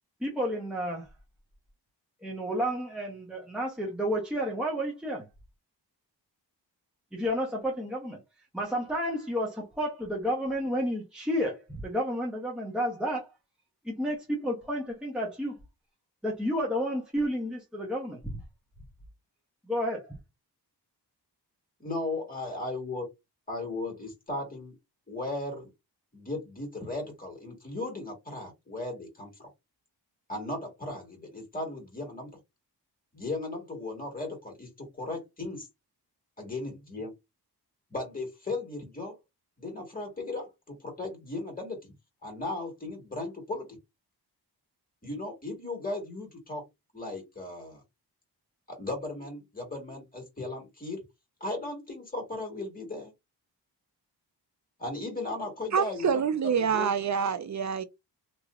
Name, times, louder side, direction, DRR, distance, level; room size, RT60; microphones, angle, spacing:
voice 1, 0.2-1.1 2.2-5.2 7.1-8.2 8.5-13.3 13.8-15.6 16.2-18.4 19.7-20.1, equal, ahead, 1.0 m, -31 dB
voice 2, 21.8-23.1 23.5-24.8 25.1-25.7 26.1-29.5 30.3-32.3 33.1-35.7 36.4-37.1 37.9-39.2 39.6-41.9 42.2-43.7 45.0-46.6 46.9-47.8 48.7-51.0 51.4-53.1 54.8-56.2 56.7-56.9, left 2 dB, 20° left, 1.7 m, -36 dB
voice 3, 55.7-57.8, right 7 dB, 45° right, 0.6 m, -26 dB
3.1 x 2.9 x 2.4 m
wide cardioid pair, 105°, 41 cm